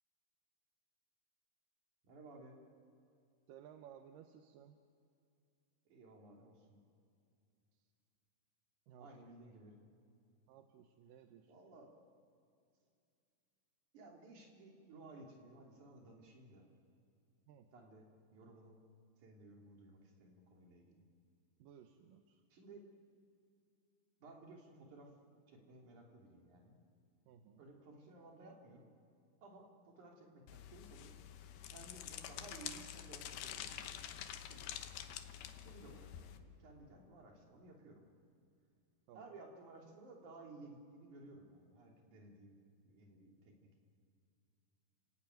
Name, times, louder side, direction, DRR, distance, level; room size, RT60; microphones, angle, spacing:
voice 1, 2.0-2.5 5.9-6.8 9.0-9.8 11.5-11.9 13.9-16.7 17.7-18.7 19.2-21.0 22.5-22.8 24.2-25.1 25.5-26.8 27.6-28.9 29.4-31.2 31.7-34.0 34.5-34.7 35.2-38.1 39.1-42.6 42.8-43.8, right 2 dB, 55° right, 0 dB, 4.3 m, -57 dB
voice 2, 3.5-4.8 8.9-9.3 10.5-11.5 17.5-17.7 21.6-22.4 27.3-27.6 39.1-39.2, right 9 dB, 70° right, 6 dB, 2.4 m, -58 dB
sound 1, 30.5-36.4, left 10 dB, 80° left, 2.9 m, -48 dB
30.0 x 17.5 x 9.3 m, 2.5 s
omnidirectional pair, 4.3 m